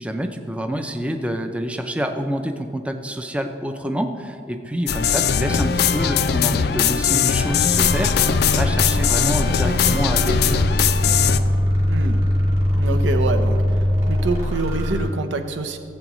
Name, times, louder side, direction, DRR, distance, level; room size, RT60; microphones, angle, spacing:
voice 1, 0.0-8.1 8.4-10.6, equal, 5° right, 6 dB, 0.4 m, -27 dB
sound 1, 4.9-11.4, left 7 dB, 55° left, 0.4 m, -20 dB
sound 2, 7.7-15.0, left 1 dB, 35° right, 2.0 m, -22 dB
voice 2, 11.9-12.2 12.8-13.6 14.1-15.8, right 3 dB, 85° right, 7 dB, 0.8 m, -25 dB
15.5 x 7.9 x 3.0 m, 2.4 s
head